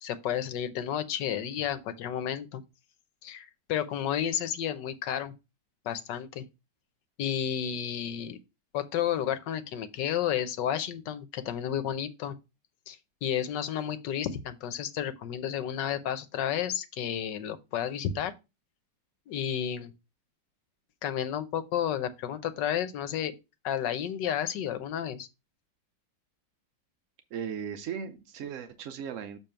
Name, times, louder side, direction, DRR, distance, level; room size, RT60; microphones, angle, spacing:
voice 1, 0.0-2.6 3.2-5.3 5.8-6.4 7.2-8.4 8.7-12.3 12.9-18.3 19.3-19.9 21.0-23.3 23.6-25.3, left 9 dB, 70° left, 1.4 m, -31 dB
voice 2, 27.3-29.4, right 7 dB, 70° right, 0.7 m, -37 dB
7.0 x 3.2 x 5.7 m
omnidirectional pair, 2.0 m